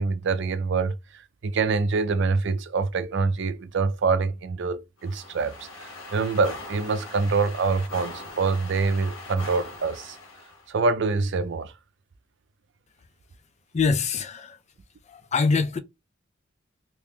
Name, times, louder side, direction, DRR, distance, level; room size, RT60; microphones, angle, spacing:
voice 1, 0.0-10.2 10.7-11.7, right 4 dB, 60° right, 0.5 m, -25 dB
sound 1, 5.0-10.7, left 2 dB, 85° left, 0.9 m, -41 dB
voice 2, 13.7-14.6 15.1-15.8, left 4 dB, 35° left, 0.5 m, -24 dB
3.0 x 2.8 x 3.5 m
head